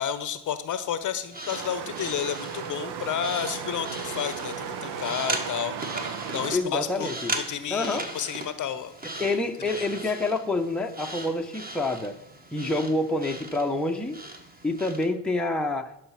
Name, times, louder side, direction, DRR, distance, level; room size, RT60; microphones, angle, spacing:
voice 1, 0.0-4.5 4.8-5.8 6.3-10.1, left 9 dB, 40° left, 12 dB, 0.9 m, -31 dB
sound 1, 1.2-15.1, right 2 dB, 20° right, 1.6 m, -38 dB
sound 2, 1.5-6.6, right 7 dB, 50° right, 1.1 m, -35 dB
sound 3, 2.0-9.6, right 1 dB, 80° right, 4.7 m, -56 dB
voice 2, 6.5-7.4 7.7-8.1 9.2-12.2 12.5-14.2 14.6-15.9, left 2 dB, ahead, 2 dB, 0.9 m, -27 dB
12.0 x 5.6 x 5.8 m, 0.88 s
hypercardioid pair, 65°, 48 cm